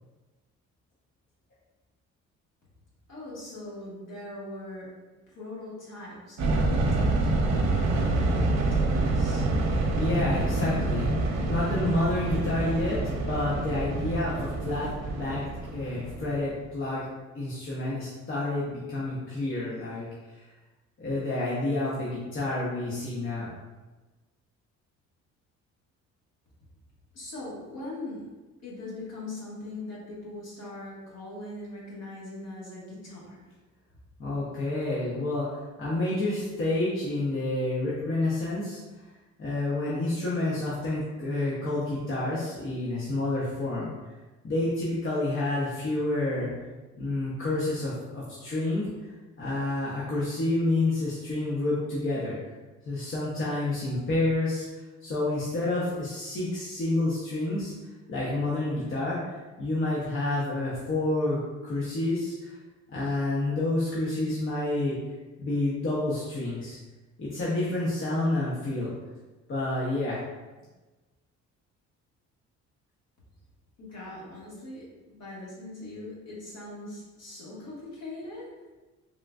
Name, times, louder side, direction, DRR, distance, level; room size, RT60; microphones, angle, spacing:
voice 1, 3.1-4.9 5.3-9.5 27.1-28.2 28.6-33.4 73.8-78.5, left 2 dB, 60° left, -6 dB, 1.4 m, -41 dB
sound 1, 6.4-16.6, right 2 dB, 65° right, 0.6 m, -27 dB
voice 2, 9.9-11.1 11.5-15.4 15.7-17.0 17.3-20.5 21.0-23.5 34.2-38.8 39.4-43.9 44.4-46.5 47.0-49.1 49.4-52.4 52.8-57.7 58.1-62.6 62.9-65.0 65.4-66.8 67.2-68.9 69.5-70.2, left 2 dB, 45° left, -7 dB, 0.8 m, -29 dB
3.6 x 2.5 x 2.2 m, 1.2 s
cardioid pair, 80°, 29 cm